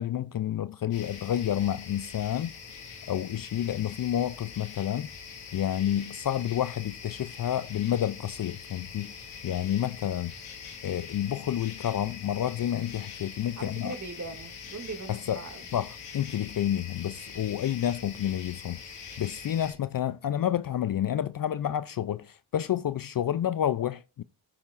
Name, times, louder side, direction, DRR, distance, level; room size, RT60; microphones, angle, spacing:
voice 1, 0.0-2.5 3.1-5.1 5.5-10.3 10.8-13.9 15.1-15.4 15.7-18.8 19.2-24.2, left 11 dB, 45° left, 0.5 m, -29 dB
sound 1, 0.9-19.7, left 6 dB, 85° left, 2.5 m, -44 dB
voice 2, 13.6-15.7, right 3 dB, 35° right, 2.5 m, -40 dB
14.0 x 8.7 x 2.6 m
supercardioid pair, 45°, 50 cm